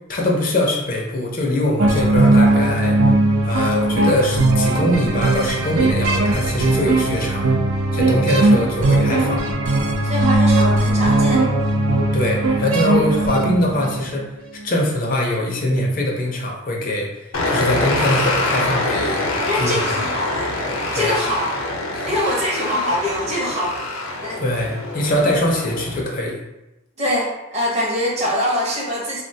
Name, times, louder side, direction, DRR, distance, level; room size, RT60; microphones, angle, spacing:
voice 1, 0.1-3.0 3.4-7.5 7.9-9.4 12.1-14.3 14.6-19.3 19.5-19.9 20.9-21.2 21.9-22.3 24.4-26.4, left 1 dB, 40° left, -1 dB, 0.4 m, -22 dB
sound 1, 1.8-14.1, right 2 dB, 90° right, 0.4 m, -18 dB
voice 2, 8.3-8.6 10.0-11.4 19.4-20.5 20.9-21.5 22.1-23.8 24.2-24.4 27.0-29.2, equal, 30° right, -3 dB, 0.6 m, -24 dB
sound 2, 17.3-26.0, left 2 dB, 85° left, 0.6 m, -25 dB
3.3 x 2.1 x 2.6 m, 0.95 s
head